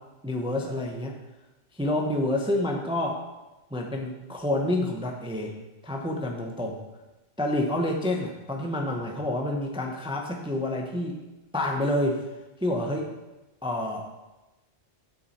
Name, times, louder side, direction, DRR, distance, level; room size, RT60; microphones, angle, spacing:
voice 1, 0.2-1.1 1.7-3.2 3.7-5.6 5.8-6.8 7.4-11.2 11.5-12.3 12.6-13.1 13.6-14.2, left 1 dB, 5° right, 1 dB, 0.7 m, -28 dB
8.6 x 7.5 x 4.2 m, 1.1 s
omnidirectional pair, 1.2 m